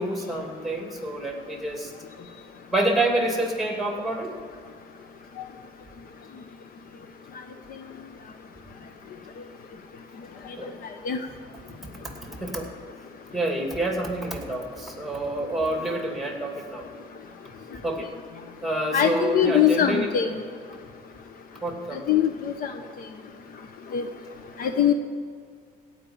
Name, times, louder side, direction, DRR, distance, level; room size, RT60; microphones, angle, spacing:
voice 1, 0.0-1.9 2.7-4.3 10.6-11.2 12.4-12.7 13.3-16.9 17.8-18.1 18.6-20.1 21.6-22.2, right 1 dB, ahead, 2 dB, 2.5 m, -28 dB
voice 2, 18.9-20.3 22.1-22.7 23.9-24.0 24.6-24.9, left 9 dB, 55° left, 7 dB, 0.9 m, -21 dB
17.0 x 5.6 x 8.7 m, 2.1 s
cardioid pair, 110°, 17 cm